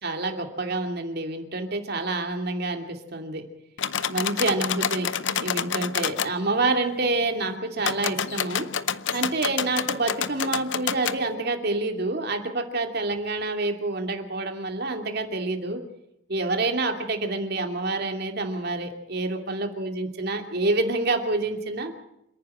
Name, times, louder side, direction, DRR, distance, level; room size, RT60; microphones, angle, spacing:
voice 1, 0.0-3.4 4.1-5.1 5.4-8.7 9.1-15.8 16.3-21.9, right 2 dB, 55° right, 5 dB, 2.7 m, -27 dB
sound 1, 3.8-6.3 7.8-11.2, left 8 dB, 70° left, 0.7 m, -28 dB
27.5 x 9.6 x 10.0 m, 0.81 s
head